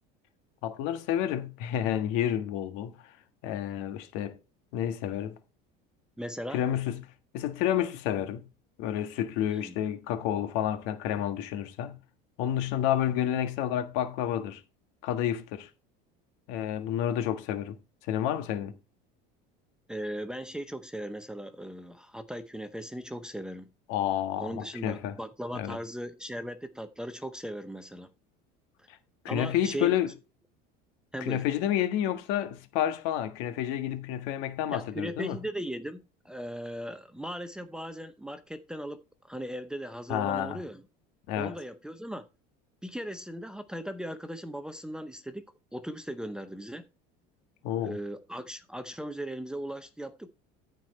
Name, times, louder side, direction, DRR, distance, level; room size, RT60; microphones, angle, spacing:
voice 1, 0.6-3.1 3.4-4.4 4.7-5.4 6.5-8.5 8.8-12.0 12.4-14.6 15.0-15.7 16.5-17.8 18.0-18.7 23.9-25.2 25.5-25.8 28.9-29.0 29.2-30.1 31.2-35.4 40.1-40.6 41.3-41.5 47.6-48.0, left 11 dB, 70° left, 1.6 m, -30 dB
voice 2, 6.2-6.6 9.5-9.8 19.9-23.7 24.4-28.1 28.8-28.9 29.3-30.0 31.1-31.4 34.7-39.0 39.3-40.8 41.4-42.3 42.8-45.4 45.7-46.8 47.8-50.3, equal, 5° right, 0.7 m, -38 dB
13.5 x 4.7 x 4.3 m
cardioid pair, 135°, 20 cm